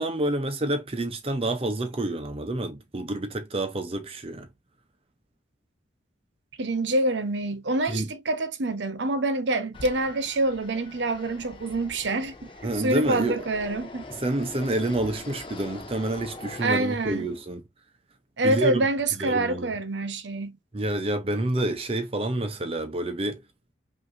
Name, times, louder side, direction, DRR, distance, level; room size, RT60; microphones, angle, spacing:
voice 1, 0.0-4.5 7.9-8.1 12.6-13.5 14.1-17.6 18.4-18.9 19.2-19.7 20.7-23.4, right 1 dB, 30° right, 0.6 m, -28 dB
voice 2, 6.6-14.0 16.6-17.3 18.4-20.6, right 2 dB, 75° right, 0.8 m, -26 dB
Fixed-wing aircraft airplane, 9.7-17.5, left 2 dB, 30° left, 0.7 m, -43 dB
5.5 x 2.6 x 2.6 m
head